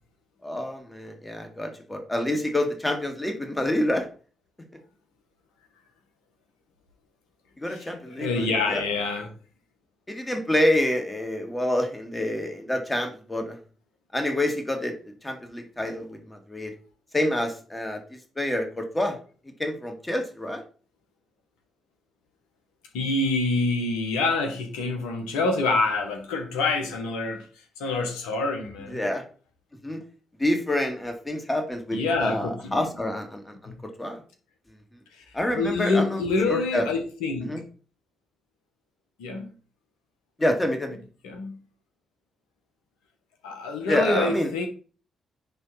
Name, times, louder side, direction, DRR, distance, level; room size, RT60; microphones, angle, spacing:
voice 1, 0.4-4.1 7.6-8.8 10.1-13.6 14.1-16.7 17.1-19.2 19.6-20.6 28.9-29.2 29.8-30.0 30.4-33.7 34.0-34.2 35.3-36.2 36.5-36.9 37.4-37.6 40.4-41.0 43.9-44.5, left 1 dB, 15° left, 2.3 m, -27 dB
voice 2, 7.7-9.3 22.9-27.4 27.8-29.0 31.9-32.7 33.7-33.8 35.1-35.2 35.5-37.6 39.2-39.5 41.2-41.6 43.4-44.7, left 3 dB, 75° left, 1.5 m, -26 dB
10.0 x 3.6 x 4.3 m
hypercardioid pair, 40°, 0 cm